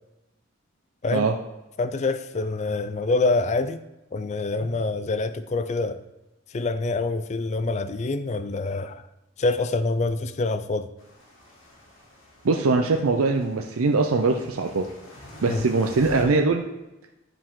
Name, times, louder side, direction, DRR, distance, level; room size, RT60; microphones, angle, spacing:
voice 1, 1.8-3.8 4.1-6.0 6.5-9.0 9.4-10.9 15.5-15.7, left 3 dB, 35° left, 0.4 m, -26 dB
sound 1, 11.0-16.2, left 1 dB, 70° left, 2.1 m, -46 dB
voice 2, 12.4-14.9 15.4-16.6, right 3 dB, 80° right, 0.5 m, -22 dB
10.5 x 4.9 x 3.7 m
head